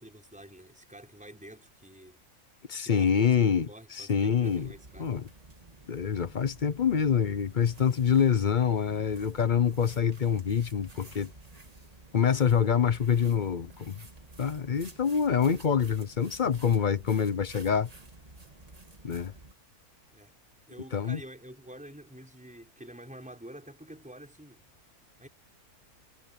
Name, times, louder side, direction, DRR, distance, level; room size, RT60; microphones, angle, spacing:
voice 1, 0.0-2.2 2.8-5.1 20.1-20.3 20.7-24.7 25.2-25.3, right 1 dB, 5° right, 5.7 m, -48 dB
voice 2, 2.7-4.7 5.0-5.2 5.9-11.3 12.1-14.0 14.4-17.9 19.0-19.3 20.9-21.2, left 7 dB, 45° left, 0.6 m, -26 dB
sound 1, 4.4-19.5, right 2 dB, 25° right, 1.8 m, -52 dB
omnidirectional pair, 1.6 m